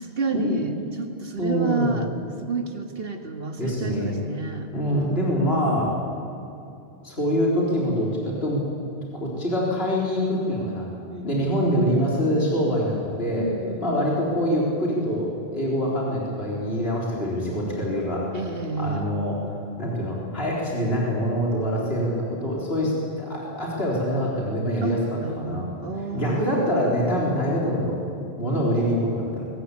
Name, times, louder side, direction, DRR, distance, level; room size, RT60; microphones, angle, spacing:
voice 1, 0.0-2.1 2.4-4.7 11.1-11.5 13.4-14.1 18.3-19.1 22.8-23.0 24.8-26.9, right 4 dB, 65° right, 5 dB, 2.1 m, -30 dB
voice 2, 1.4-2.0 3.6-4.2 4.7-5.9 7.0-8.6 9.1-10.9 11.2-13.4 13.8-18.2 18.8-19.4 19.8-22.9 23.2-25.7 26.1-28.0 28.4-29.5, equal, 70° left, -4 dB, 4.4 m, -25 dB
22.5 x 19.0 x 8.5 m, 2.7 s
omnidirectional pair, 1.1 m